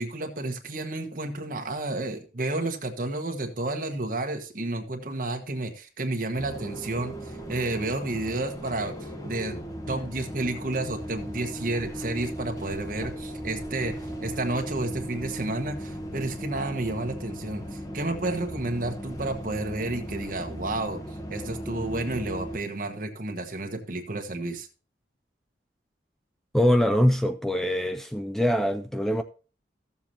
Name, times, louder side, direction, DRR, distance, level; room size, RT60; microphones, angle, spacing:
voice 1, 0.0-9.6 9.9-13.9 14.2-21.0 21.3-24.7, right 2 dB, 50° right, 1.3 m, -31 dB
sound 1, 6.4-22.6, equal, 20° left, 1.1 m, -37 dB
voice 2, 26.5-29.2, equal, ahead, 0.4 m, -23 dB
15.0 x 7.1 x 2.9 m
head